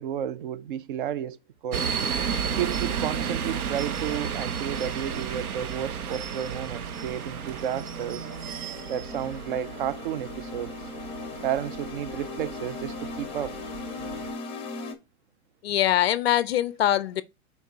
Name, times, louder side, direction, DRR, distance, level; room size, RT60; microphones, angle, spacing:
voice 1, 0.0-1.9 2.5-8.3 8.9-10.8 11.4-13.6, right 10 dB, 40° right, 0.4 m, -32 dB
sound 1, 1.7-14.3, right 7 dB, 80° right, 0.9 m, -33 dB
sound 2, 5.9-14.9, left 3 dB, 15° left, 1.0 m, -39 dB
voice 2, 15.6-17.2, left 12 dB, 45° left, 0.4 m, -23 dB
5.7 x 4.4 x 4.1 m
hypercardioid pair, 120°, 43 cm